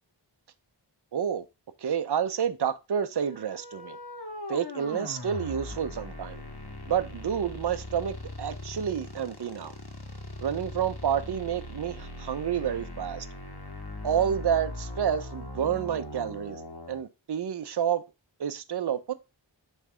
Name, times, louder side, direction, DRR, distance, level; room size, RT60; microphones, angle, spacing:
voice 1, 1.1-1.4 1.8-4.0 4.5-6.4 6.9-9.7 10.4-13.3 14.0-16.6 16.9-18.0 18.4-19.1, right 8 dB, 60° right, 0.6 m, -29 dB
sound 1, 3.1-17.0, left 1 dB, 55° left, 1.6 m, -40 dB
6.3 x 3.2 x 4.7 m
wide cardioid pair, 45°, 45 cm